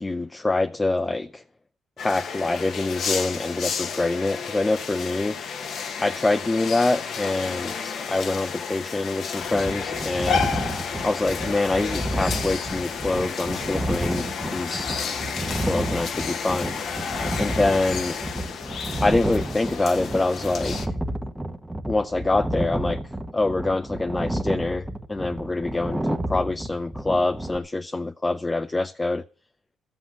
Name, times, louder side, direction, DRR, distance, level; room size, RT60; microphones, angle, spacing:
voice 1, 0.0-1.4 2.0-5.4 6.0-10.6 11.0-14.9 15.7-16.8 17.4-18.2 19.0-21.0 21.9-23.0 23.3-29.2, left 2 dB, 20° left, 0.5 m, -25 dB
sound 1, 2.0-20.9, left 6 dB, 65° left, 1.3 m, -31 dB
sound 2, 9.4-27.6, right 1 dB, 10° right, 1.1 m, -31 dB
13.0 x 8.2 x 6.4 m
cardioid pair, 90°, 0 cm